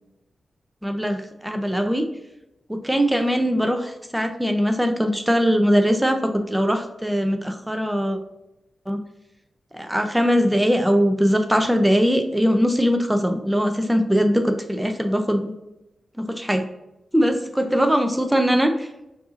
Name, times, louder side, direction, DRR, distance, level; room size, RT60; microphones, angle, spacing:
voice 1, 0.8-2.0 2.7-8.2 8.9-9.0 9.7-15.5 16.2-16.6 17.1-18.9, equal, 5° right, 6 dB, 0.6 m, -21 dB
5.3 x 2.7 x 2.5 m, 0.92 s
cardioid pair, 65°, 0 cm